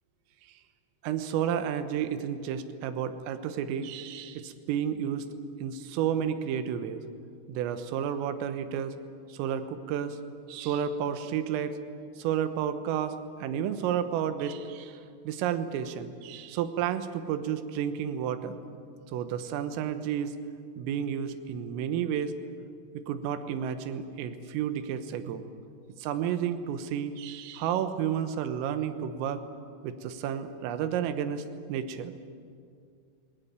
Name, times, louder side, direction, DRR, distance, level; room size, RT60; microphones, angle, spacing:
voice 1, 1.0-5.3 5.6-7.0 7.5-9.0 9.3-10.2 10.5-11.8 12.2-18.6 19.1-20.4 20.8-22.4 23.0-25.4 26.0-29.4 29.8-32.1, right 9 dB, 90° right, 10 dB, 3.8 m, -31 dB
21.0 x 19.0 x 9.5 m, 2.4 s
omnidirectional pair, 5.7 m